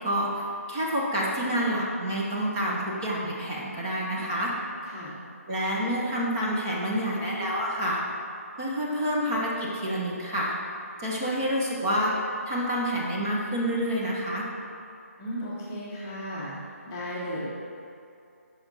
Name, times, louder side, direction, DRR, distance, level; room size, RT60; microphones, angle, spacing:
voice 1, 0.0-4.5 5.5-8.0 8.6-10.5 11.0-14.4, equal, 15° right, -5 dB, 0.7 m, -28 dB
voice 2, 4.8-5.2 15.2-16.6 16.9-17.5, equal, 15° left, -6 dB, 0.8 m, -35 dB
9.4 x 5.5 x 3.9 m, 2.6 s
hypercardioid pair, 175°, 8 cm